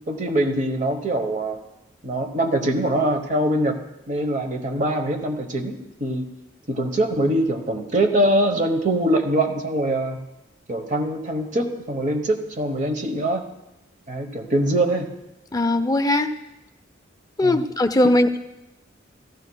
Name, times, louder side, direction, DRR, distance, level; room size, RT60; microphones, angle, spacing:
voice 1, 0.1-1.6 2.0-3.8 4.1-6.3 6.7-10.2 10.7-13.4 14.1-15.1 17.4-17.6, right 1 dB, 40° right, 6 dB, 1.0 m, -23 dB
voice 2, 15.5-16.3 17.4-18.4, left 1 dB, 20° left, 8 dB, 0.5 m, -19 dB
16.5 x 14.5 x 2.3 m, 0.96 s
head